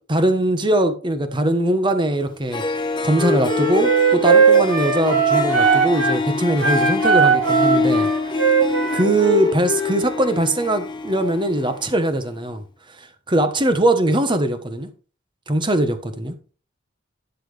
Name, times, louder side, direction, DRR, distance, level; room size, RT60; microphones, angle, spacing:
voice 1, 0.1-2.6 3.0-8.1 8.9-12.6 13.0-14.9 15.5-16.3, right 1 dB, 25° right, 1.1 m, -21 dB
Harp, 2.2-2.3 2.5-12.0, left 3 dB, 25° left, 1.1 m, -26 dB
Wind instrument woodwind instrument, 3.1-6.2 6.6-10.0, right 5 dB, 75° right, 5.8 m, -19 dB
12.0 x 7.4 x 3.3 m
head